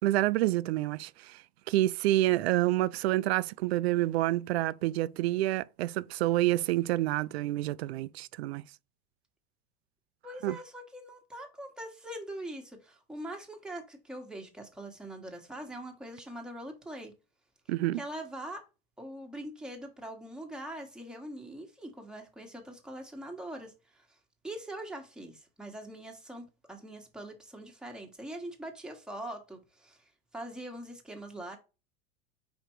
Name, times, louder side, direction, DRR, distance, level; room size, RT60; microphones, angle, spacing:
voice 1, 0.0-1.4 1.7-8.6 10.4-10.6 17.7-18.0, right 16 dB, 90° right, 0.5 m, -28 dB
voice 2, 10.2-17.1 18.0-18.7 19.0-24.2 24.4-31.6, right 1 dB, ahead, 1.3 m, -43 dB
5.1 x 4.5 x 4.5 m
supercardioid pair, 140°, 31 cm